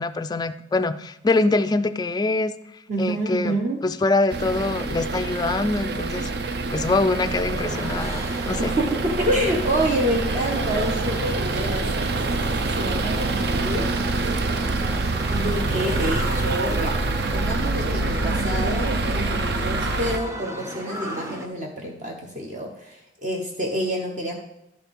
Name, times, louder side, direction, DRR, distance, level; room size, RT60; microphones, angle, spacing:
voice 1, 0.0-2.6 3.0-3.6 3.8-6.3 6.7-8.7, left 3 dB, 20° left, 9 dB, 0.3 m, -24 dB
voice 2, 2.9-3.8 8.6-13.9 15.3-17.0 17.3-24.4, right 1 dB, 40° right, 1 dB, 0.9 m, -28 dB
sound 1, 4.3-20.2, right 3 dB, 60° right, 0.6 m, -26 dB
sound 2, 7.7-21.5, right 1 dB, 15° right, 0.7 m, -35 dB
11.5 x 4.6 x 5.2 m, 0.84 s
head